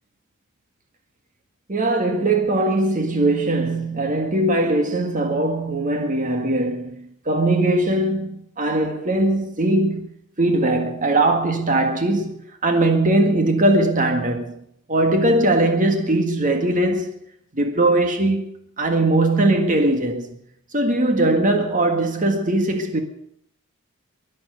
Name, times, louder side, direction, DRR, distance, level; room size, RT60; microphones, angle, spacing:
voice 1, 1.7-10.1 10.4-14.6 14.9-17.1 17.5-20.3 20.7-23.0, right 2 dB, 35° right, 1.8 m, -20 dB
23.0 x 7.7 x 8.0 m
head